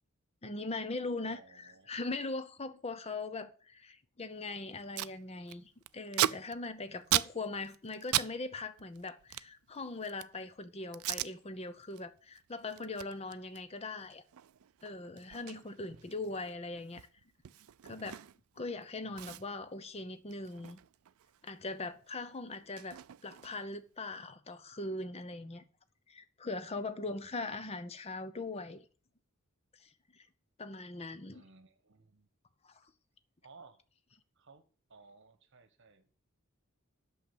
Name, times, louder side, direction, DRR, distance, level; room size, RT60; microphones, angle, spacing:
voice 1, 0.4-14.2 14.8-17.1 17.8-18.2 18.6-20.8 21.4-25.6 26.1-28.8 29.8-30.3 30.6-31.4 32.6-32.9, left 3 dB, 30° left, 0.7 m, -41 dB
voice 2, 1.3-2.0 6.9-7.3 15.9-16.5 19.0-19.6 27.0-27.7 31.3-32.3 33.4-33.8 34.4-34.6 34.9-36.1, right 3 dB, 60° right, 1.2 m, -60 dB
Packing tape duct tape, 4.4-4.5 4.7-5.1 5.5-8.3 8.6-10.4 10.9-11.3 11.8-12.0 12.3-18.6 18.8-18.9 19.2-21.5 21.8-23.8, right 13 dB, 75° right, 0.4 m, -38 dB
8.5 x 6.4 x 7.8 m
head